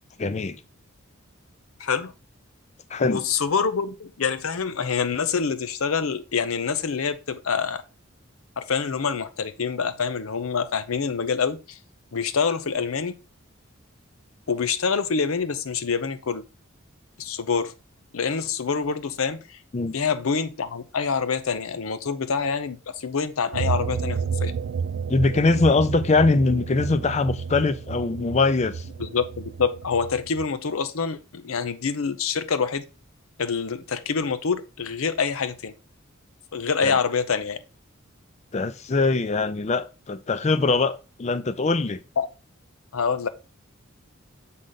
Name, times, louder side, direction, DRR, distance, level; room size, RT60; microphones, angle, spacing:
voice 1, 0.2-0.6 2.9-3.2 19.7-19.9 25.1-28.8 36.8-37.0 38.5-42.0, left 3 dB, 30° left, 0.4 m, -22 dB
voice 2, 1.8-2.1 3.0-7.8 8.6-11.8 12.1-13.1 14.5-16.4 17.2-17.7 18.1-19.6 19.9-24.5 29.0-32.8 33.4-35.7 36.5-37.6 42.2-42.3 42.9-43.3, left 5 dB, 80° left, 0.7 m, -26 dB
sound 1, 23.5-30.4, right 6 dB, 70° right, 0.4 m, -31 dB
7.7 x 3.8 x 3.9 m
head